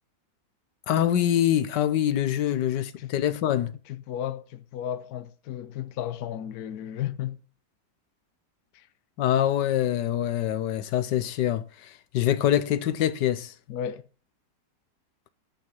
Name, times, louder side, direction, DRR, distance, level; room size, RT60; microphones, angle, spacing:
voice 1, 0.9-3.7 9.2-13.5, left 11 dB, 85° left, 1.5 m, -25 dB
voice 2, 3.9-7.4 8.7-8.9 13.7-14.0, left 10 dB, 65° left, 1.2 m, -34 dB
12.0 x 6.0 x 7.0 m
omnidirectional pair, 1.8 m